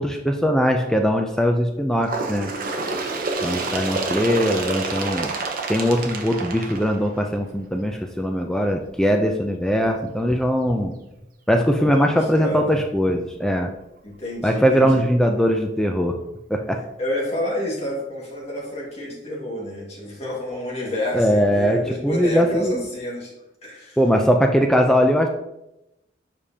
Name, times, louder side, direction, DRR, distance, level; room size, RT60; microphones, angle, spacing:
voice 1, 0.0-2.5 3.4-5.3 5.7-10.9 11.5-13.7 14.4-16.2 16.5-16.8 20.5-20.6 21.1-22.8 24.0-25.3, equal, 5° left, 3 dB, 0.4 m, -20 dB
Bird, 2.0-7.5 8.4-8.5 8.8-8.9 9.8-9.9 10.8-10.9 11.8-11.9, right 3 dB, 50° right, 0.8 m, -28 dB
voice 2, 3.6-4.8 11.8-12.8 14.0-15.1 17.0-23.3 23.6-24.0, left 1 dB, 35° left, -3 dB, 1.8 m, -30 dB
7.2 x 5.0 x 2.8 m, 0.89 s
head